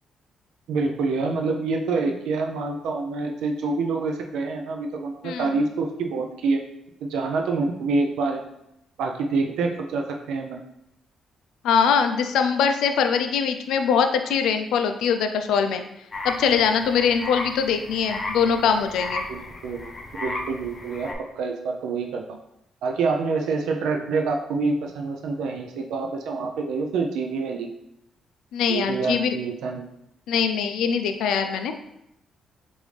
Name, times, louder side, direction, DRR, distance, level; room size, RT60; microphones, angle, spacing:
voice 1, 0.7-6.6 7.0-8.4 9.0-10.6 19.3-19.9 20.2-22.4 22.8-27.7 28.7-29.9, right 4 dB, 85° right, 2 dB, 0.4 m, -26 dB
voice 2, 11.6-15.8 16.2-19.2 28.5-29.4 30.3-31.7, left 6 dB, 85° left, 7 dB, 0.4 m, -22 dB
sound 1, 16.1-21.1, left 2 dB, 25° left, 0.7 m, -34 dB
4.9 x 2.6 x 3.2 m, 0.82 s
cardioid pair, 80°, 0 cm